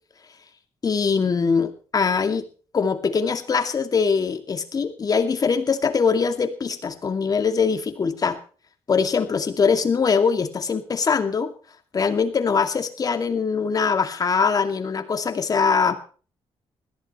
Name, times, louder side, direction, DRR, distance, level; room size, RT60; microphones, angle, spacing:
voice 1, 0.8-2.5 2.7-8.4 8.9-11.5 11.9-15.9, left 5 dB, 35° left, 8 dB, 2.4 m, -22 dB
20.5 x 15.0 x 3.2 m, 0.39 s
cardioid pair, 115°, 11 cm